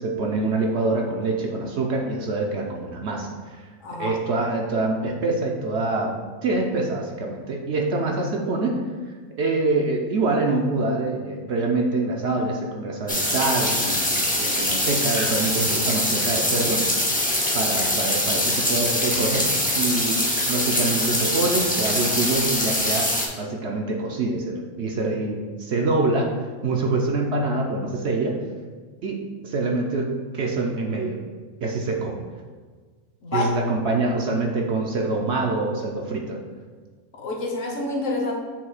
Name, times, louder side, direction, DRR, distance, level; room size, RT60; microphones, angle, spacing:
voice 1, 0.0-3.6 4.0-6.1 6.4-8.8 9.4-16.8 17.5-19.5 19.8-23.1 23.4-26.3 26.6-28.4 29.0-31.2 31.6-32.2 33.3-36.4, right 3 dB, 60° right, 0 dB, 0.8 m, -25 dB
voice 2, 3.8-4.2 26.7-26.8 33.2-33.5 37.1-38.3, left 2 dB, 65° left, 0 dB, 1.3 m, -28 dB
sound 1, 13.1-23.3, left 1 dB, 10° left, 0.6 m, -23 dB
7.0 x 2.8 x 4.8 m, 1.5 s
omnidirectional pair, 1.5 m